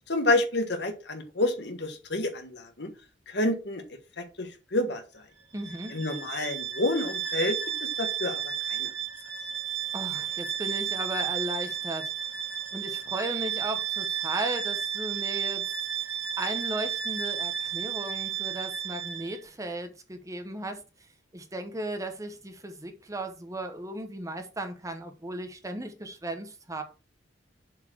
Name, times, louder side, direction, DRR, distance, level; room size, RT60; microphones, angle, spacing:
voice 1, 0.1-2.9 3.3-3.8 4.2-5.2 5.9-8.9, left 2 dB, 65° left, 1.6 m, -29 dB
voice 2, 5.5-6.0 9.9-15.6 15.9-20.8 21.3-26.8, right 1 dB, 20° right, 0.9 m, -36 dB
Bowed string instrument, 5.5-19.4, right 9 dB, 85° right, 1.5 m, -33 dB
7.2 x 4.5 x 4.6 m
head